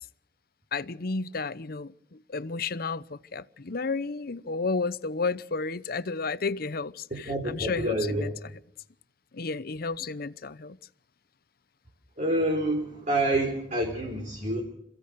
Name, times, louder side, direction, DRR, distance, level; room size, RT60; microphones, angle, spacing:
voice 1, 0.7-8.3 9.3-10.8, left 4 dB, 55° left, 0.8 m, -32 dB
voice 2, 7.1-8.4 12.2-14.6, right 1 dB, 45° right, 4.2 m, -28 dB
28.0 x 15.5 x 6.5 m
head